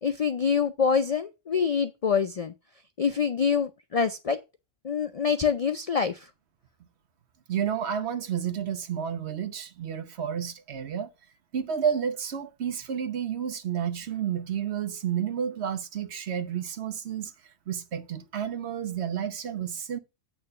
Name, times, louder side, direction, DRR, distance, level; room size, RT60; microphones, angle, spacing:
voice 1, 0.0-2.5 3.0-4.4 4.8-6.3, left 6 dB, 55° left, 0.4 m, -25 dB
voice 2, 7.5-11.1 11.5-17.3 17.7-20.0, right 8 dB, 65° right, 1.1 m, -31 dB
8.7 x 3.4 x 6.7 m
omnidirectional pair, 1.2 m